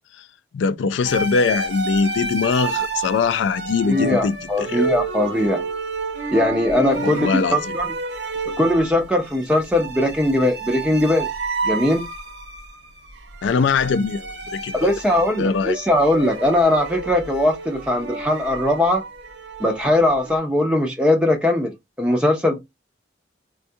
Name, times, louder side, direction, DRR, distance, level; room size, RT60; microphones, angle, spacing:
voice 1, 0.5-4.9 7.0-7.8 13.4-14.9 15.4-15.8, left 5 dB, 75° left, 0.3 m, -22 dB
sound 1, 1.0-20.4, right 3 dB, 65° right, 0.8 m, -30 dB
voice 2, 3.9-5.6 6.3-7.9 8.6-11.3 11.6-12.0 14.7-19.0 19.6-21.7 22.0-22.6, left 1 dB, 5° right, 0.4 m, -20 dB
4.3 x 2.3 x 2.6 m
head